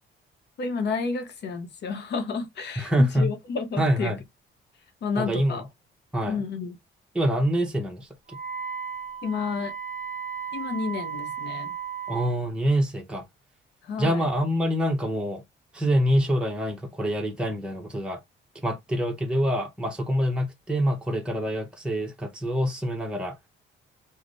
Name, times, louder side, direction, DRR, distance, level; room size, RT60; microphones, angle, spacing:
voice 1, 0.6-4.1 5.0-5.6 6.3-6.8 9.2-9.7 10.5-11.7 13.8-14.3, left 4 dB, 60° left, 0.7 m, -31 dB
voice 2, 2.8-3.3 3.8-4.2 5.2-5.6 6.1-6.4 7.1-8.1 12.1-13.2 14.0-15.4 15.7-18.2 18.6-23.4, equal, 5° right, 0.8 m, -25 dB
Wind instrument woodwind instrument, 8.3-12.3, right 7 dB, 40° right, 0.7 m, -35 dB
3.3 x 2.1 x 2.5 m
cardioid pair, 90°, 20 cm